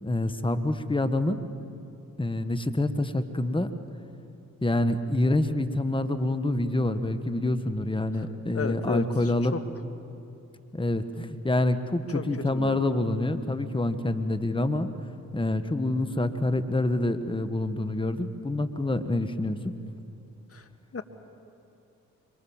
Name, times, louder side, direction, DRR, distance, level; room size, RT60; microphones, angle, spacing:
voice 1, 0.0-1.4 2.2-3.7 4.6-9.6 10.7-14.9 15.3-19.8, left 2 dB, 15° left, 10 dB, 1.6 m, -27 dB
voice 2, 8.5-9.1 9.5-9.6 12.1-12.8 20.5-20.6 20.9-21.0, left 4 dB, 35° left, 8 dB, 2.1 m, -32 dB
26.0 x 24.0 x 7.4 m, 2.8 s
hypercardioid pair, 45°, 39 cm